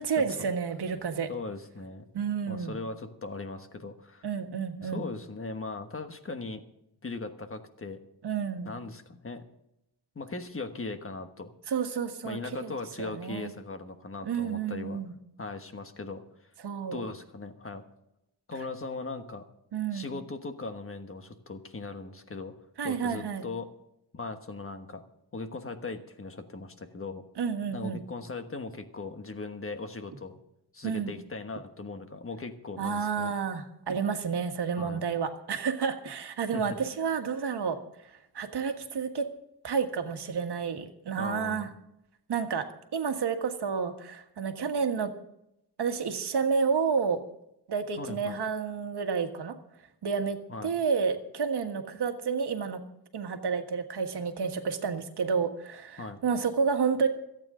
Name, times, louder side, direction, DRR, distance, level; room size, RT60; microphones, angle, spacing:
voice 1, 0.0-1.3 2.1-2.8 4.2-5.0 8.2-8.7 11.7-12.7 13.0-13.5 14.2-15.1 16.6-17.0 19.7-20.1 22.8-23.4 27.4-28.0 30.8-31.1 32.8-37.8 38.3-39.3 39.6-41.7 42.3-42.6 42.9-45.1 45.8-47.2 47.7-49.5 50.0-52.8 53.1-57.1, right 6 dB, 75° right, 6 dB, 1.6 m, -30 dB
voice 2, 1.3-2.0 2.5-4.3 4.8-6.6 7.0-8.0 8.6-9.4 10.1-11.5 12.2-15.0 15.4-16.2 16.9-17.8 18.5-19.4 19.9-22.5 22.8-23.7 24.1-25.0 25.3-27.2 27.7-30.4 30.7-33.3 34.8-35.1 36.5-36.6 41.2-41.7 48.0-48.4 50.5-50.7 56.0-56.2, left 3 dB, 30° left, 7 dB, 1.3 m, -39 dB
27.0 x 9.0 x 3.8 m, 0.80 s
wide cardioid pair, 135°, 41 cm